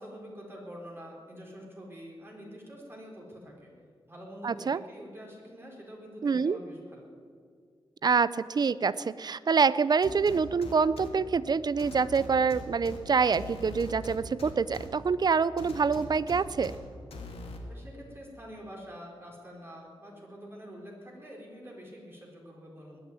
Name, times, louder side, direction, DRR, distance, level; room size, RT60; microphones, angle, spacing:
voice 1, 0.0-3.7 4.1-7.1 17.7-23.0, equal, 25° right, -2 dB, 4.4 m, -46 dB
voice 2, 4.4-4.8 6.2-6.6 8.0-16.7, right 5 dB, 45° right, 17 dB, 0.5 m, -26 dB
sound 1, 10.0-11.1 11.8-13.0 13.3-14.9 15.6-16.8 17.1-17.6, left 2 dB, 90° left, 2.1 m, -42 dB
20.5 x 6.9 x 9.6 m, 2.1 s
wide cardioid pair, 95°, 10 cm